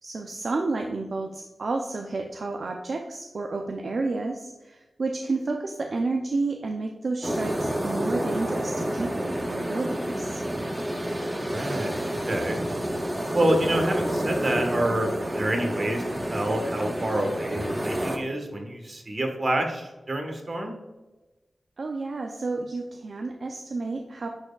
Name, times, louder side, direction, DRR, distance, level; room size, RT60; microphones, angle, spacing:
voice 1, 0.0-10.4 21.8-24.3, right 3 dB, 60° right, 2 dB, 0.5 m, -31 dB
sound 1, 7.2-18.2, equal, 15° right, 0.8 m, -29 dB
voice 2, 11.5-12.0 12.3-12.6 13.3-15.1 15.3-16.0 16.3-20.7, right 1 dB, 40° right, 3 dB, 1.4 m, -27 dB
10.5 x 4.4 x 2.3 m, 1.1 s
wide cardioid pair, 115°, 0 cm